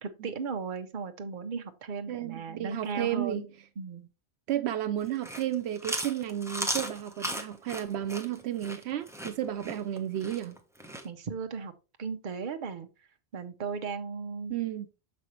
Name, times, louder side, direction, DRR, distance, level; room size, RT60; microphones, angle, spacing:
voice 1, 0.0-3.5 3.8-4.1 11.0-11.7 12.0-12.9 13.3-14.6, right 5 dB, 50° right, 0.9 m, -36 dB
voice 2, 2.1-3.5 4.5-10.6 14.5-14.9, right 11 dB, 85° right, 0.8 m, -32 dB
Chewing mastication, 5.0-11.1, right 1 dB, 5° right, 0.9 m, -36 dB
6.7 x 5.5 x 3.1 m
omnidirectional pair, 1.1 m